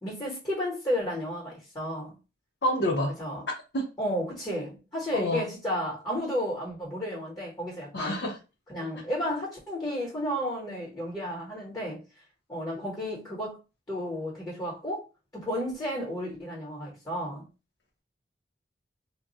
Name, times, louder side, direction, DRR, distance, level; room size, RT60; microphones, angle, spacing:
voice 1, 0.0-2.1 3.2-3.5 4.0-8.2 8.7-12.0 12.5-13.6 13.9-15.0 15.3-17.4, equal, 20° left, 1.0 m, -32 dB
voice 2, 2.6-3.1 3.7-3.9 5.1-5.5 7.9-8.4, equal, 70° left, 0.6 m, -27 dB
2.3 x 2.1 x 3.9 m
head